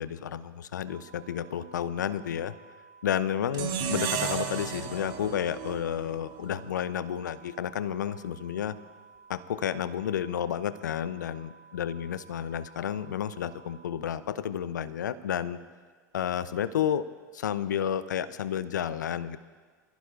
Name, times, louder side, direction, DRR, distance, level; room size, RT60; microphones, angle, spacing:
voice 1, 0.0-2.5 3.0-8.8 9.3-15.6 16.1-17.0 17.3-19.4, left 9 dB, 75° left, 15 dB, 0.6 m, -31 dB
sound 1, 0.9-13.9, right 5 dB, 5° left, 4.5 m, -55 dB
sound 2, 3.5-6.7, right 7 dB, 50° right, 2.5 m, -33 dB
26.5 x 15.5 x 2.5 m, 1.5 s
hypercardioid pair, 80°, 10 cm